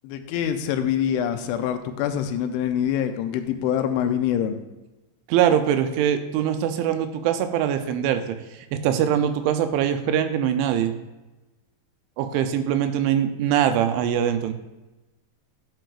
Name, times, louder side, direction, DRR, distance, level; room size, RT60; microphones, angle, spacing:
voice 1, 0.0-4.6, left 9 dB, 90° left, 8 dB, 3.2 m, -25 dB
voice 2, 5.3-10.9 12.2-14.5, right 9 dB, 85° right, 8 dB, 3.1 m, -23 dB
11.5 x 7.8 x 2.5 m, 1.1 s
omnidirectional pair, 5.3 m